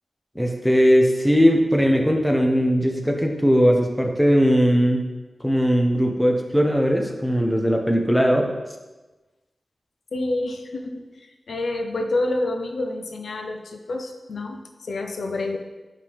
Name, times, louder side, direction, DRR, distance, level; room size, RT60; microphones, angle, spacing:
voice 1, 0.4-5.0 5.4-8.5, equal, 5° left, 2 dB, 0.7 m, -19 dB
voice 2, 10.1-15.6, left 2 dB, 85° left, 5 dB, 0.5 m, -28 dB
5.4 x 5.3 x 3.4 m, 1.2 s
wide cardioid pair, 80°, 0 cm